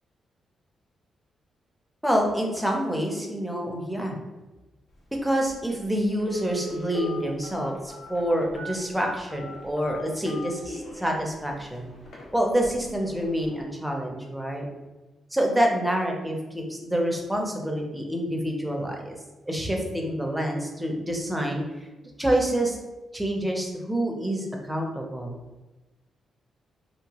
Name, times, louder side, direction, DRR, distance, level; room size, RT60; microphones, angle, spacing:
voice 1, 2.0-4.2 5.2-11.9 12.3-14.6 15.3-19.1 19.5-21.6 22.2-22.8 23.1-25.3, equal, 5° right, 1 dB, 0.5 m, -27 dB
Telephone, 5.5-5.6 6.2-11.1 11.6-11.7 12.1-12.2 12.6-12.9 13.2-13.3, equal, 65° left, 0.6 m, -37 dB
2.7 x 2.2 x 2.8 m, 1.1 s
cardioid pair, 125°, 0 cm